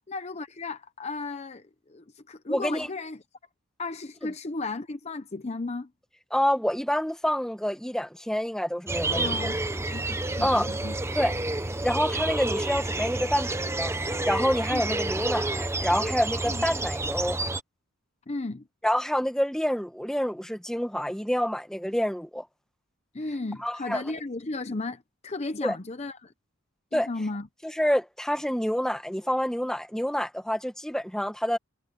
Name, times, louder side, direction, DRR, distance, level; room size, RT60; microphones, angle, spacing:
voice 1, 0.0-3.2 3.8-5.9 9.1-11.0 14.7-14.8 16.5-16.6 18.3-18.7 23.1-26.3 26.9-27.5, left 3 dB, 30° left, 0.7 m, -35 dB
voice 2, 2.5-2.9 6.3-9.5 10.4-10.7 11.1-11.4 11.6-17.4 18.8-22.5 23.6-24.0 25.6-25.8 26.9-27.1 27.8-31.6, equal, 5° left, 1.4 m, -27 dB
sound 1, 8.9-17.6, right 2 dB, 15° right, 0.9 m, -29 dB
head